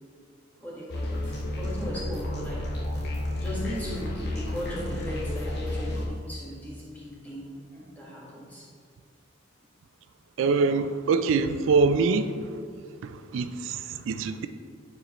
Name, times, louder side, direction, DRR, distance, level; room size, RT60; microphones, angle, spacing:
voice 1, 0.6-2.8 3.4-8.7, left 1 dB, 10° left, -6 dB, 1.4 m, -38 dB
sound 1, 0.9-6.1, left 1 dB, 55° left, 0.9 m, -31 dB
voice 2, 10.4-12.4 13.0-14.5, right 4 dB, 80° right, 9 dB, 0.3 m, -24 dB
9.1 x 4.3 x 3.0 m, 2.1 s
head